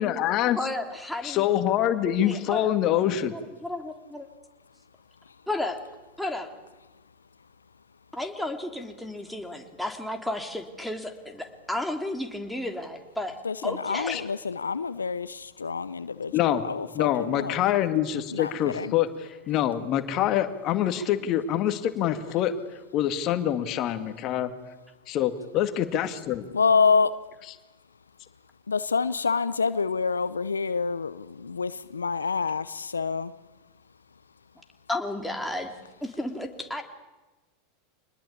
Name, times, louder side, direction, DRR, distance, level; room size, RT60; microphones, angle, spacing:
voice 1, 0.0-0.6 1.2-3.3 14.1-14.2 16.3-16.6 16.9-22.5 22.9-24.5 25.1-26.5, left 11 dB, 45° left, 9 dB, 2.1 m, -25 dB
voice 2, 0.6-1.5 2.2-4.3 5.5-5.8 6.2-6.5 8.1-14.3 21.0-21.1 34.9-35.7 36.0-36.8, left 1 dB, ahead, 3 dB, 3.4 m, -33 dB
voice 3, 13.4-17.5 18.3-18.9 26.5-27.1 28.7-33.3, left 5 dB, 90° left, 15 dB, 0.8 m, -27 dB
26.0 x 20.5 x 8.7 m, 1.1 s
hypercardioid pair, 90°, 0 cm